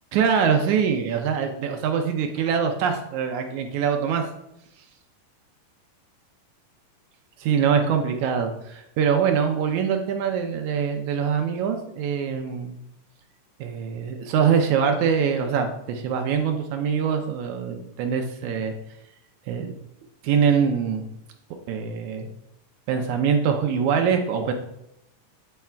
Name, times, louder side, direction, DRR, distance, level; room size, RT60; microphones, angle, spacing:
voice 1, 0.1-4.3 7.4-12.8 13.6-18.7 19.5-19.8 20.2-21.0 21.7-22.3 22.9-24.5, right 7 dB, 75° right, 5 dB, 1.9 m, -23 dB
9.3 x 3.5 x 4.4 m, 0.82 s
omnidirectional pair, 3.8 m